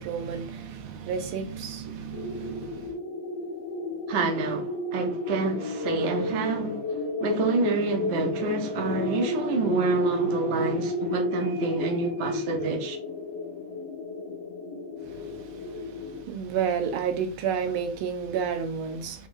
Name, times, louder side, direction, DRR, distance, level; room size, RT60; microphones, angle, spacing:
voice 1, 0.0-3.0 15.1-19.3, right 7 dB, 80° right, 1.6 m, -31 dB
sound 1, 2.1-16.3, left 2 dB, 85° left, 1.8 m, -32 dB
voice 2, 4.1-13.0, right 3 dB, 50° right, 0.7 m, -28 dB
5.1 x 3.6 x 2.6 m
omnidirectional pair, 2.4 m